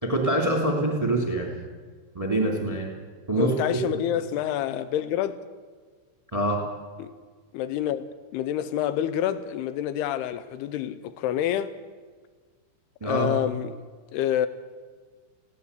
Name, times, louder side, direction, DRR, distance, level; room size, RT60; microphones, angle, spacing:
voice 1, 0.0-1.6 2.1-2.9 3.3-3.5 3.9-4.0 6.3-6.6 13.0-13.3, right 1 dB, 10° right, 1.7 m, -25 dB
voice 2, 3.4-5.4 7.0-7.1 7.5-11.7 13.0-13.8 14.1-14.5, left 11 dB, 85° left, 2.4 m, -27 dB
20.5 x 17.0 x 8.3 m
omnidirectional pair, 5.5 m